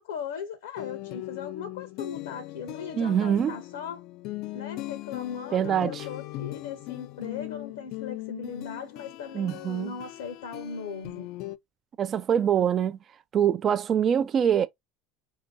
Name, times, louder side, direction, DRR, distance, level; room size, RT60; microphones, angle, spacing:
voice 1, 0.0-4.0 4.5-11.3, left 6 dB, 75° left, 0.8 m, -38 dB
sound 1, 0.8-11.6, left 17 dB, 60° left, 0.3 m, -39 dB
voice 2, 3.0-3.5 5.5-6.0 9.3-9.9 12.0-13.0 13.3-14.7, right 8 dB, 40° right, 0.4 m, -24 dB
4.9 x 2.8 x 2.7 m
hypercardioid pair, 70°, 0 cm